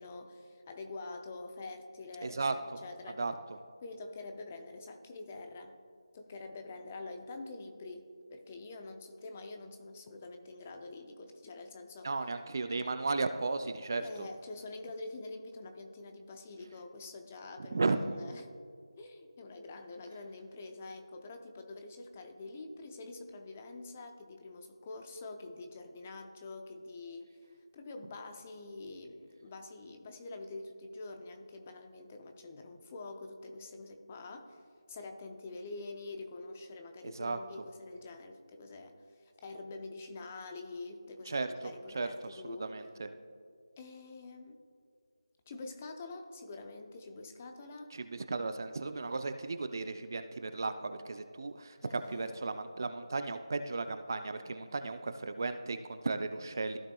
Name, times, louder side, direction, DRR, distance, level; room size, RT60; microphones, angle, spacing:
voice 1, 0.0-3.2 3.8-5.8 6.1-12.1 14.0-18.6 19.0-27.4 27.7-34.6 34.9-42.7 43.8-44.6 45.5-47.9 51.8-52.4, left 3 dB, 20° left, 5 dB, 0.5 m, -46 dB
voice 2, 2.2-2.5 3.2-3.3 12.0-14.3 17.7-18.0 37.0-37.4 41.3-41.5 41.9-43.1 47.9-56.8, right 3 dB, 40° right, 9 dB, 0.4 m, -35 dB
15.0 x 5.9 x 2.3 m, 2.2 s
figure-of-eight pair, 165°, 3 cm